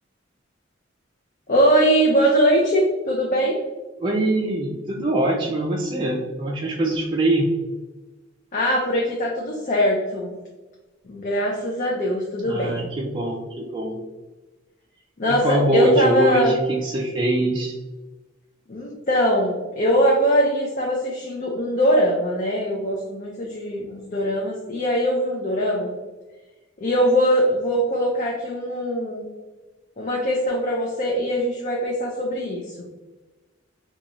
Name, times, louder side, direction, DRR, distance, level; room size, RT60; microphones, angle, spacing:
voice 1, 1.5-3.6 8.5-10.3 11.1-12.9 15.2-16.5 18.7-25.9 26.8-29.2 30.0-32.7, equal, 40° left, -2 dB, 0.5 m, -21 dB
voice 2, 4.0-7.5 12.4-14.0 15.3-17.7, right 1 dB, 25° right, -2 dB, 0.4 m, -23 dB
3.8 x 2.3 x 2.9 m, 1.2 s
head